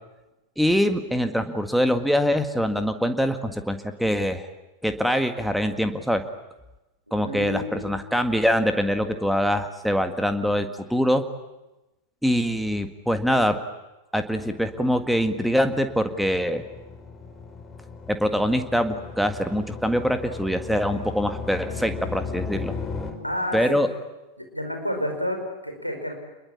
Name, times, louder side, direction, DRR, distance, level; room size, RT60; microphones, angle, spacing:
voice 1, 0.6-4.5 4.8-6.2 7.1-11.2 12.2-13.6 14.1-16.6 18.1-22.7 23.5-23.9, equal, ahead, 8 dB, 1.8 m, -24 dB
voice 2, 7.1-8.1 23.2-23.8 24.4-26.1, left 1 dB, 90° right, 4 dB, 4.8 m, -30 dB
sound 1, 14.4-23.1, left 5 dB, 15° left, 4.6 m, -37 dB
28.0 x 21.5 x 8.6 m, 1.0 s
figure-of-eight pair, 90°, 0 cm